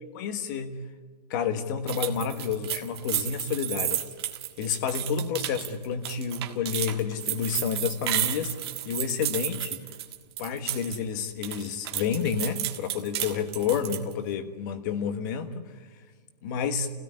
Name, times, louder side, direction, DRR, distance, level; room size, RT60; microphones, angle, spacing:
voice 1, 0.1-0.8 1.3-4.0 4.6-8.5 8.8-9.8 10.4-15.7 16.4-16.9, left 6 dB, 30° left, 10 dB, 1.4 m, -30 dB
sound 1, 1.9-11.0 11.3-14.1, right 12 dB, 40° right, 1.6 m, -32 dB
28.5 x 17.0 x 9.8 m, 1.5 s
hypercardioid pair, 175°, 21 cm